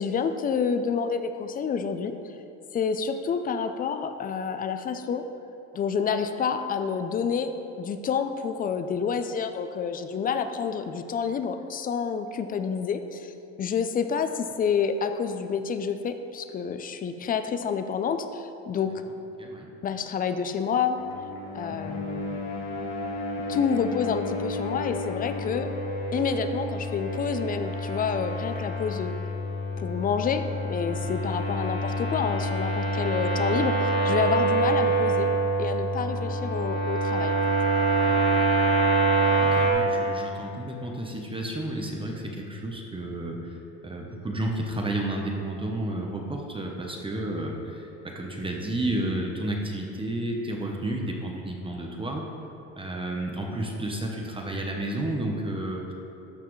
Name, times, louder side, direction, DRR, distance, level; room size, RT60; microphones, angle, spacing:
voice 1, 0.0-2.2 2.7-5.3 5.7-7.5 7.8-13.3 13.6-18.9 19.8-21.0 21.5-22.4 23.5-25.7 26.1-29.1 29.8-35.3 35.6-37.4, left 6 dB, 25° left, 9 dB, 0.4 m, -28 dB
sound 1, 20.9-39.7, right 2 dB, 75° left, 1.7 m, -27 dB
voice 2, 21.7-22.0 31.0-31.1 38.1-38.3 39.4-43.4 43.8-52.3 52.8-55.9, right 1 dB, 15° right, 0 dB, 0.8 m, -31 dB
13.0 x 5.7 x 3.2 m, 2.9 s
supercardioid pair, 115°, 34 cm